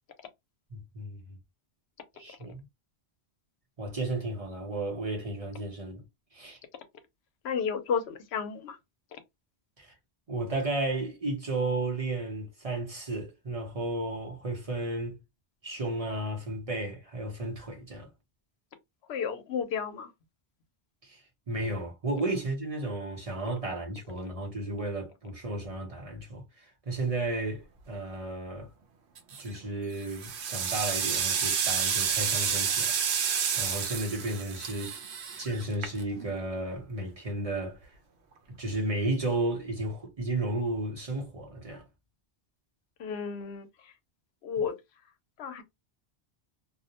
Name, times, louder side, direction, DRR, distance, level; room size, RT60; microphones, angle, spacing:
voice 1, 0.7-1.4 2.1-2.7 3.8-6.0 6.3-6.6 9.8-9.9 10.3-15.2 15.6-18.1 21.0-28.7 29.4-35.0 35.4-37.9 38.5-41.9, right 2 dB, 40° right, 0.8 m, -33 dB
voice 2, 7.4-8.8 19.1-20.1 43.0-43.7 44.4-44.8 45.4-45.6, left 6 dB, 80° left, 0.9 m, -32 dB
sound 1, 29.2-29.6 30.0-36.3, right 7 dB, 85° right, 0.9 m, -30 dB
2.4 x 2.1 x 2.7 m
omnidirectional pair, 1.1 m